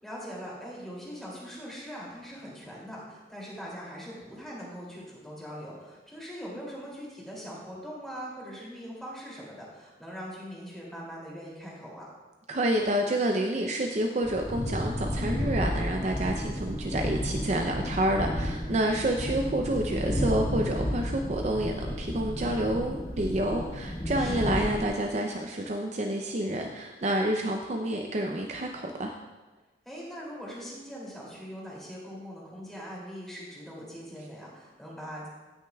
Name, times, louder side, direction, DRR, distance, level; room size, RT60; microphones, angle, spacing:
voice 1, 0.0-12.1 19.1-19.4 24.2-24.5 29.8-35.3, equal, ahead, -5 dB, 2.6 m, -41 dB
voice 2, 12.5-29.1, right 1 dB, 40° right, 2 dB, 0.5 m, -28 dB
sound 1, 14.2-24.9, equal, 40° left, 1.5 m, -32 dB
17.0 x 6.5 x 2.3 m, 1.2 s
head